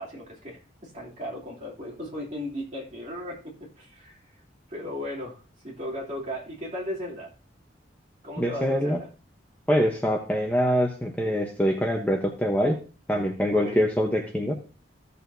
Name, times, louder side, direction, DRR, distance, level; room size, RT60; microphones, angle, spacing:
voice 1, 0.0-4.2 4.7-7.3 8.2-9.1 13.5-13.8, left 1 dB, 35° right, -4 dB, 2.9 m, -36 dB
voice 2, 8.4-9.0 9.7-12.8 13.1-14.5, equal, 10° left, 2 dB, 0.9 m, -24 dB
15.5 x 6.8 x 2.7 m, 0.36 s
head